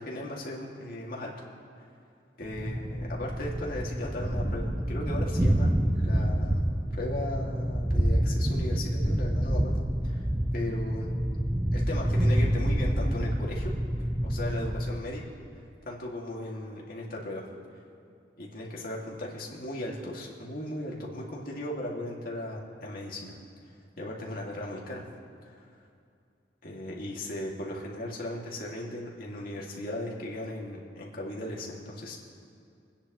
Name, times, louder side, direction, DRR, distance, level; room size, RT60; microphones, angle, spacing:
voice 1, 0.0-1.3 2.4-6.6 6.9-9.8 10.0-10.2 10.5-11.1 11.7-13.7 14.0-15.2 15.8-17.4 18.4-23.3 24.0-25.0 26.6-32.2, left 1 dB, 55° left, -3 dB, 2.3 m, -37 dB
Thunder, 2.5-15.1, equal, 15° right, 0.6 m, -27 dB
28.0 x 10.0 x 3.1 m, 2.5 s
head